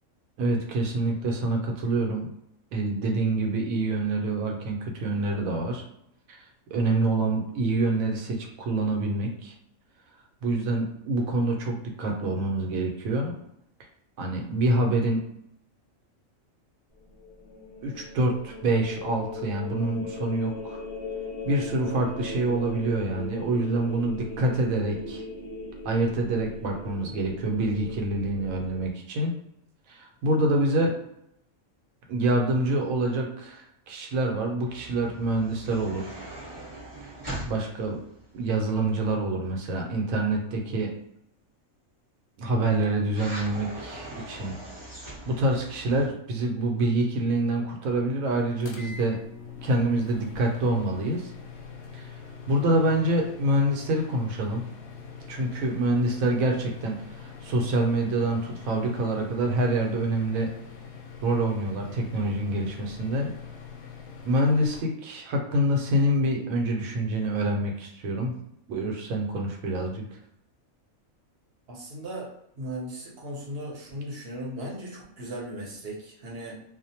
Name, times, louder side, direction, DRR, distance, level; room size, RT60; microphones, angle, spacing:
voice 1, 0.4-2.3 2.7-5.8 6.3-6.4 6.7-9.5 10.4-13.3 14.2-15.2 17.8-20.8 21.4-25.2 25.8-29.3 29.9-30.9 32.1-36.2 37.4-38.0 38.3-40.9 42.4-44.5 45.0-49.2 49.6-51.3 51.9-52.0 52.5-54.7 55.3-60.5 61.2-63.3 64.2-68.4 68.7-70.1, right 1 dB, 80° right, 2 dB, 1.0 m, -26 dB
sound 1, 17.0-28.9, left 2 dB, 40° left, 0.3 m, -39 dB
sound 2, 34.7-39.2 43.1-46.1, right 1 dB, 20° right, 0.8 m, -41 dB
sound 3, 48.6-64.8, left 5 dB, 65° left, 0.7 m, -43 dB
voice 2, 71.7-76.5, right 1 dB, 55° right, -3 dB, 0.9 m, -37 dB
2.4 x 2.0 x 2.7 m, 0.75 s
omnidirectional pair, 1.4 m